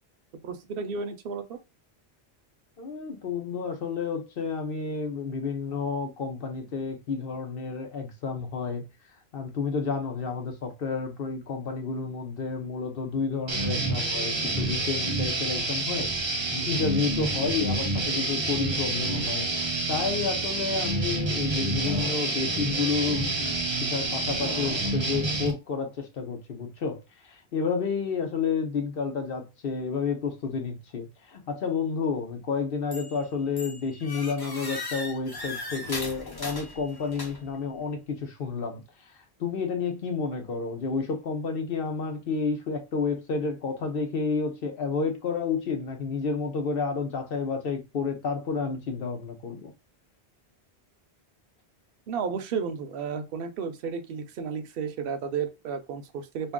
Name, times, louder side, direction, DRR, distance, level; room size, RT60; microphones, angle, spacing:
voice 1, 0.4-1.6 52.1-56.5, right 6 dB, 65° right, 0.8 m, -33 dB
voice 2, 2.8-8.9 9.3-16.1 16.5-19.5 19.9-38.8 39.4-49.7, left 5 dB, 60° left, 1.0 m, -30 dB
sound 1, 13.5-25.5, right 2 dB, 30° right, 0.7 m, -28 dB
sound 2, 21.8-22.8 24.4-25.4, left 4 dB, 80° left, 1.3 m, -40 dB
sound 3, 32.9-33.2 33.6-37.6, left 2 dB, 25° left, 0.7 m, -38 dB
2.6 x 2.6 x 3.6 m
omnidirectional pair, 1.1 m